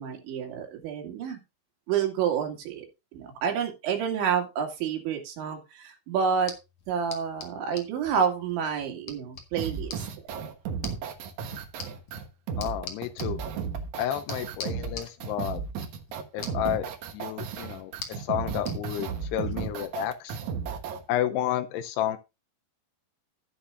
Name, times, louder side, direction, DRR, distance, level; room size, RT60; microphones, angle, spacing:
voice 1, 0.0-1.4 1.9-2.9 3.1-6.5 6.9-10.1, right 7 dB, 85° right, 3 dB, 4.6 m, -29 dB
sound 1, 6.3-18.8, left 5 dB, 50° left, 2.3 m, -46 dB
sound 2, 9.6-21.0, right 6 dB, 65° right, 1.9 m, -34 dB
voice 2, 12.6-13.4 14.0-15.6 16.3-20.4 21.1-22.2, left 11 dB, 80° left, 11 dB, 2.5 m, -31 dB
11.5 x 10.5 x 2.6 m, 0.25 s
omnidirectional pair, 5.2 m